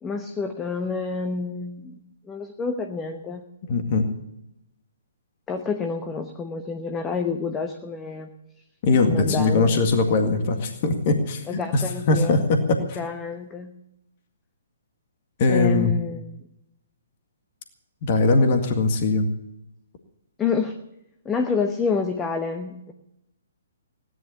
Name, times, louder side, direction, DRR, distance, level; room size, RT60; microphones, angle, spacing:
voice 1, 0.0-2.0 2.3-3.5 5.5-8.3 9.0-9.8 11.5-12.4 12.8-13.8 15.5-16.4 20.4-20.8 21.2-22.9, left 5 dB, 15° left, 5 dB, 1.0 m, -28 dB
voice 2, 3.7-4.1 8.8-11.4 11.7-13.0 15.4-15.9 18.0-19.3, left 3 dB, 40° left, 6 dB, 1.9 m, -21 dB
16.5 x 11.0 x 6.9 m, 0.85 s
figure-of-eight pair, 125°, 0 cm